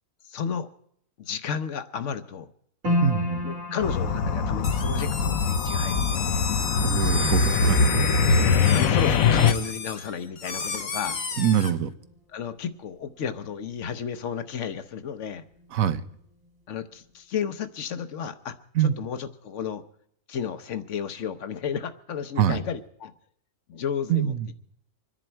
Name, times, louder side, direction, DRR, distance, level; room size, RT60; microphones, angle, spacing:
voice 1, 0.3-0.7 1.2-2.5 3.4-6.5 8.2-11.2 12.3-15.4 16.7-19.8 20.3-23.1 23.7-24.3, left 7 dB, 65° left, 11 dB, 1.1 m, -33 dB
sound 1, 2.8-15.3 15.5-16.5 16.9-17.0, left 1 dB, 70° right, 3.0 m, -36 dB
voice 2, 3.0-3.4 6.8-8.0 11.4-11.9 15.7-16.0 18.7-18.9 22.4-22.6 24.1-24.5, right 9 dB, 85° right, 12 dB, 1.3 m, -24 dB
sound 2, 3.8-9.5, left 4 dB, 90° left, 1.3 m, -22 dB
sound 3, 4.6-11.7, left 5 dB, 40° left, 0.9 m, -33 dB
25.5 x 10.5 x 4.5 m, 0.68 s
omnidirectional pair, 1.4 m